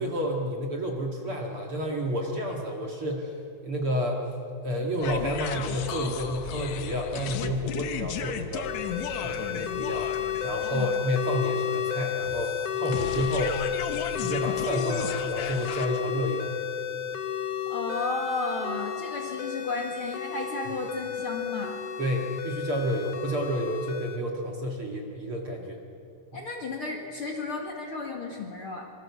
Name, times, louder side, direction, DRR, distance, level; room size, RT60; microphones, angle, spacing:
voice 1, 0.0-3.4 3.6-4.2 4.6-8.7 9.2-10.1 10.4-13.6 14.2-16.5 22.0-25.8, equal, 40° right, 1 dB, 2.4 m, -30 dB
sound 1, 5.0-15.9, left 8 dB, 65° left, 1.8 m, -35 dB
sound 2, 8.6-24.2, left 9 dB, 80° left, 1.3 m, -32 dB
voice 2, 17.7-21.8 26.3-28.8, left 3 dB, 45° left, 1 dB, 2.2 m, -33 dB
26.5 x 24.0 x 7.2 m, 2.5 s
omnidirectional pair, 4.3 m